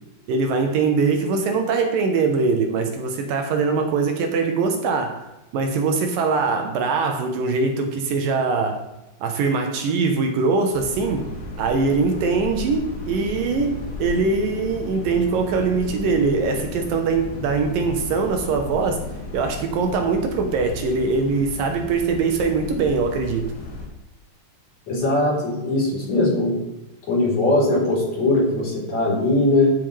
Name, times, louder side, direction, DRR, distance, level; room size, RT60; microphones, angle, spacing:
voice 1, 0.3-8.9 9.2-11.3 11.6-19.0 19.3-23.5, right 4 dB, 75° right, 4 dB, 2.6 m, -22 dB
sound 1, 10.7-23.9, left 2 dB, 75° left, 5.0 m, -34 dB
voice 2, 24.9-26.6 27.1-29.7, left 2 dB, 50° left, -5 dB, 5.2 m, -20 dB
13.5 x 8.4 x 3.4 m, 0.95 s
omnidirectional pair, 4.2 m